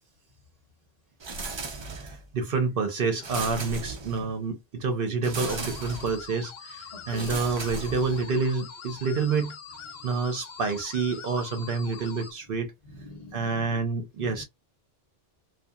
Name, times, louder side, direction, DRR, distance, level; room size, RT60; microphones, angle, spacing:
sound 1, 1.2-2.3 3.2-4.4 5.2-6.3 7.1-8.4, right 3 dB, 40° right, 0.4 m, -37 dB
voice 1, 2.0-9.5 10.0-12.7 13.3-14.4, right 4 dB, 60° right, 0.8 m, -28 dB
sound 2, 5.3-12.3, left 6 dB, 70° left, 0.9 m, -43 dB
voice 2, 6.9-7.4 9.9-10.1 12.5-13.8 14.2-14.4, left 3 dB, 45° left, 0.8 m, -44 dB
2.7 x 2.3 x 2.2 m
omnidirectional pair, 1.1 m